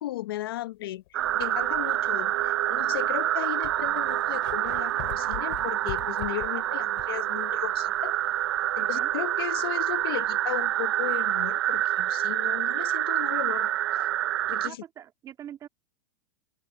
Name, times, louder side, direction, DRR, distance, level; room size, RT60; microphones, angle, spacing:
voice 1, 0.0-8.1 8.8-14.1 14.5-14.8, left 14 dB, 80° left, 0.9 m, -36 dB
sound 1, 1.1-1.3 2.0-2.1 3.0-3.1 3.3-7.3 7.6-7.7 11.3-11.4, left 20 dB, 65° left, 4.6 m, -42 dB
sound 2, 1.1-14.7, right 13 dB, 90° right, 0.7 m, -27 dB
sound 3, 1.2-10.8, left 30 dB, 50° left, 6.2 m, -61 dB
voice 2, 8.8-9.1 14.6-15.7, right 10 dB, 30° right, 2.4 m, -44 dB
open air
supercardioid pair, 145°, 12 cm